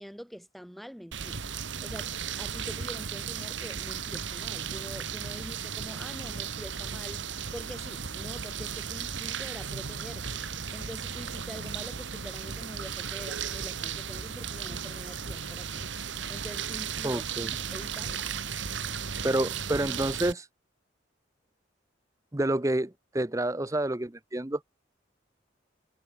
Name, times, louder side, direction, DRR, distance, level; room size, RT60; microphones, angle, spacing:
voice 1, 0.0-1.4 1.8-7.2 7.5-10.3 10.7-15.9 16.3-18.3, equal, ahead, 2.6 m, -45 dB
sound 1, 1.1-20.3, right 7 dB, 75° right, 1.7 m, -35 dB
voice 2, 17.0-17.5 19.2-20.5 22.3-24.6, right 1 dB, 15° right, 0.7 m, -28 dB
head